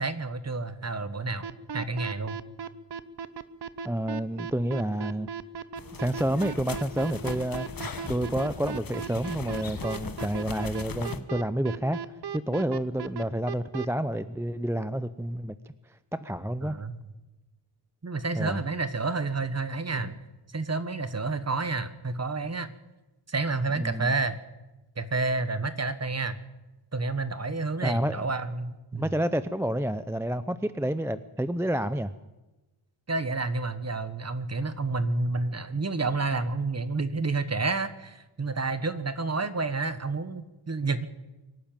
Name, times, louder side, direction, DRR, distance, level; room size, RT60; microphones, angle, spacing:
voice 1, 0.0-1.5 1.7-2.4 16.6-17.0 18.0-20.2 20.5-22.7 23.3-24.4 25.0-26.4 26.9-29.1 33.1-41.1, right 3 dB, 30° right, 12 dB, 1.4 m, -29 dB
sound 1, 1.4-13.9, right 6 dB, 50° right, 1.0 m, -36 dB
voice 2, 3.8-5.3 5.9-7.7 8.0-12.0 12.3-15.5 16.1-16.8 18.3-18.6 23.7-24.1 27.8-28.2 28.9-32.1, right 1 dB, 5° right, 12 dB, 0.6 m, -29 dB
sound 2, 5.8-11.2, left 5 dB, 45° left, 1.4 m, -39 dB
24.5 x 12.0 x 9.0 m, 1.1 s
wide cardioid pair, 100°, 49 cm